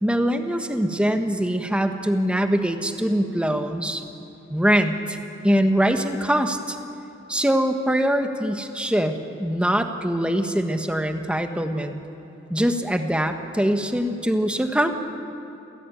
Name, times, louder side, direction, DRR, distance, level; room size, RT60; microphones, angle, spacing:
voice 1, 0.0-4.0 4.5-5.2 5.4-6.8 7.3-11.9 12.5-14.9, equal, 5° right, 6 dB, 1.4 m, -23 dB
27.5 x 16.5 x 9.3 m, 2.8 s
head